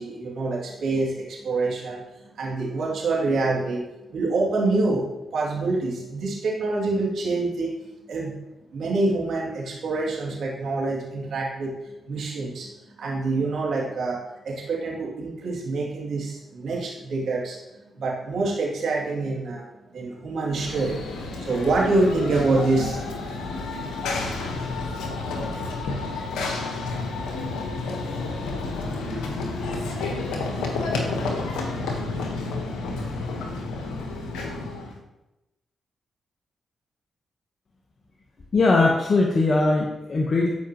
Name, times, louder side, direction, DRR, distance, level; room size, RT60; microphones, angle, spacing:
voice 1, 0.0-2.0 2.4-3.8 4.1-5.0 5.3-7.7 8.1-8.3 8.7-11.7 12.1-17.6 17.9-19.6 19.9-21.0 21.4-23.1, right 3 dB, 75° right, -4 dB, 2.7 m, -26 dB
Run / Train, 20.5-35.0, left 3 dB, 85° left, 1.2 m, -30 dB
voice 2, 38.5-40.5, left 3 dB, 50° left, -1 dB, 1.1 m, -20 dB
13.0 x 5.1 x 3.0 m, 0.96 s
supercardioid pair, 50°, 0 cm